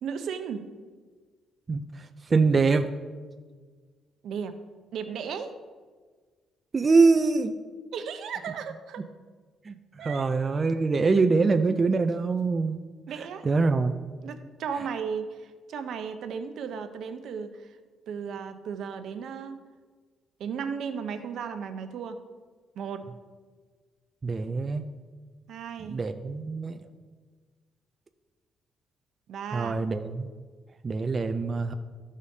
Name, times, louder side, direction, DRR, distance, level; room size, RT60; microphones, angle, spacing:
voice 1, 0.0-0.7 4.2-4.6 4.9-5.6 7.9-9.1 10.0-10.3 13.1-13.5 14.2-17.6 18.1-19.6 20.4-22.2 22.8-23.1 25.5-26.1 29.3-29.7, right 6 dB, 75° right, 8 dB, 0.7 m, -35 dB
voice 2, 1.7-2.9 6.7-7.6 9.7-9.8 10.0-12.8 13.4-13.9 24.2-24.8 25.8-26.8 29.5-30.3 30.8-31.7, right 4 dB, 35° right, 7 dB, 0.4 m, -24 dB
14.0 x 4.9 x 2.8 m, 1.5 s
cardioid pair, 90°, 0 cm